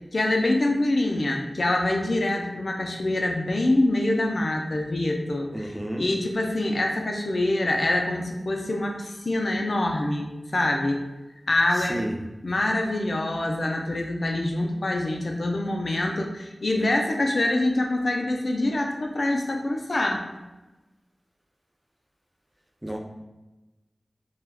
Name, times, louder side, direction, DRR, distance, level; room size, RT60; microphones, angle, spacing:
voice 1, 0.1-11.0 11.5-12.0 12.4-20.2, left 1 dB, 65° left, 2 dB, 0.4 m, -25 dB
voice 2, 5.5-6.0 11.7-12.2 22.8-23.0, right 1 dB, 15° right, 0 dB, 0.4 m, -31 dB
3.3 x 2.2 x 2.2 m, 1.1 s
wide cardioid pair, 75°, 0 cm